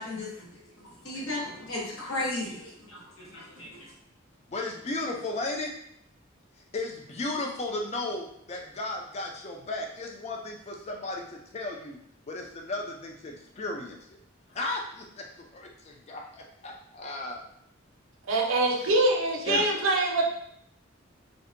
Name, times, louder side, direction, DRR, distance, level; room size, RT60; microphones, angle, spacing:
voice 1, 0.0-3.9, left 2 dB, 85° left, -4 dB, 0.8 m, -36 dB
voice 2, 4.5-5.7 6.7-12.0 12.3-14.2 14.5-15.3 15.5-17.4 19.4-19.6, left 2 dB, 35° left, 1 dB, 0.4 m, -35 dB
voice 3, 18.3-20.3, right 2 dB, 80° right, 0 dB, 0.5 m, -24 dB
2.6 x 2.1 x 2.5 m, 0.70 s
head